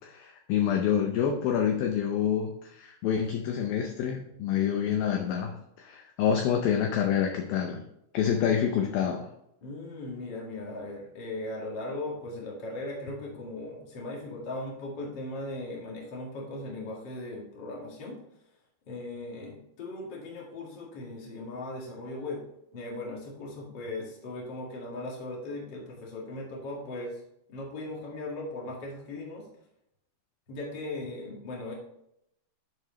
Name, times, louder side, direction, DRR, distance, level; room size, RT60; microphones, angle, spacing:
voice 1, 0.0-7.8 8.1-9.3, left 8 dB, 85° left, 3 dB, 2.1 m, -27 dB
voice 2, 9.6-18.2 18.9-22.4 22.7-27.2 27.5-29.5 30.5-31.7, left 2 dB, 40° left, -3 dB, 1.6 m, -38 dB
10.5 x 4.8 x 3.2 m, 0.80 s
omnidirectional pair, 5.1 m